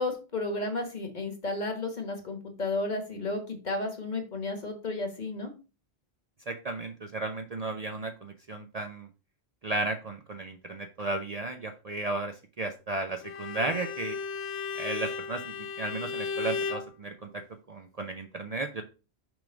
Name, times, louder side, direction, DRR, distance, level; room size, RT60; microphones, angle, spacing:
voice 1, 0.0-5.5, left 2 dB, 45° left, 5 dB, 1.4 m, -32 dB
voice 2, 6.5-9.1 9.6-14.2 14.8-15.4 15.8-17.4 17.7-18.8, right 2 dB, 45° right, 5 dB, 0.6 m, -34 dB
Bowed string instrument, 13.2-16.9, left 5 dB, 85° left, 0.9 m, -35 dB
6.1 x 3.5 x 5.1 m, 0.32 s
omnidirectional pair, 1.1 m